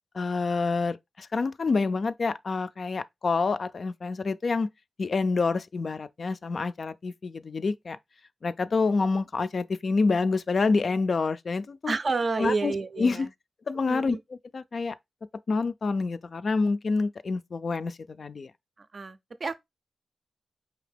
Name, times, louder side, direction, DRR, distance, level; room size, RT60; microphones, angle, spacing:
voice 1, 0.1-4.7 5.0-8.0 8.4-11.9 12.4-13.3 13.7-14.2 14.5-15.0 15.5-18.5, left 4 dB, 55° left, 0.3 m, -27 dB
voice 2, 11.9-13.3 13.9-14.2 18.9-19.6, right 4 dB, 50° right, 0.5 m, -29 dB
4.9 x 2.8 x 3.3 m
cardioid pair, 80°, 0 cm